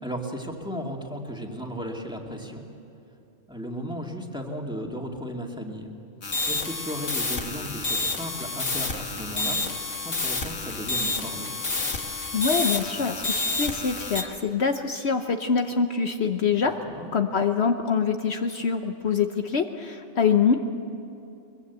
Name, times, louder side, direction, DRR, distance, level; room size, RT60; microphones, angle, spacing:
voice 1, 0.0-2.7 3.5-5.9 6.5-9.6 10.0-11.5 16.5-17.1, equal, 5° right, 0 dB, 2.2 m, -35 dB
sound 1, 6.2-14.2, left 3 dB, 75° left, 2.1 m, -29 dB
voice 2, 12.3-16.8 17.1-20.6, left 6 dB, 60° left, 6 dB, 1.1 m, -25 dB
22.5 x 22.5 x 8.2 m, 2.8 s
omnidirectional pair, 1.3 m